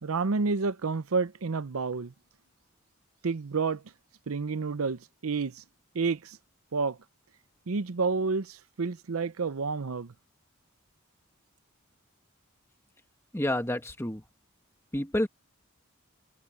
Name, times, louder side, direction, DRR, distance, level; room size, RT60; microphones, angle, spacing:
voice 1, 0.0-2.1 3.2-3.8 4.3-5.5 5.9-6.4 6.7-7.0 7.7-10.1, right 4 dB, 75° right, 0.7 m, -29 dB
voice 2, 13.3-14.2 14.9-15.3, left 1 dB, 10° left, 1.4 m, -29 dB
head